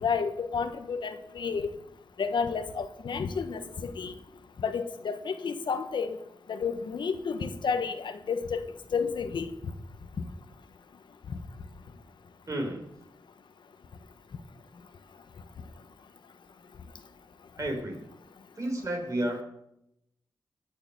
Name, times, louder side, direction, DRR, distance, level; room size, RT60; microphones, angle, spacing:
voice 1, 0.0-1.7 2.2-4.1 4.6-6.2 6.5-8.6 8.9-9.5, left 5 dB, 85° left, 9 dB, 1.3 m, -31 dB
voice 2, 12.5-12.9 17.6-18.0 18.5-19.4, right 1 dB, 40° right, 2 dB, 4.9 m, -31 dB
18.5 x 7.0 x 8.3 m, 0.82 s
wide cardioid pair, 90°, 8 cm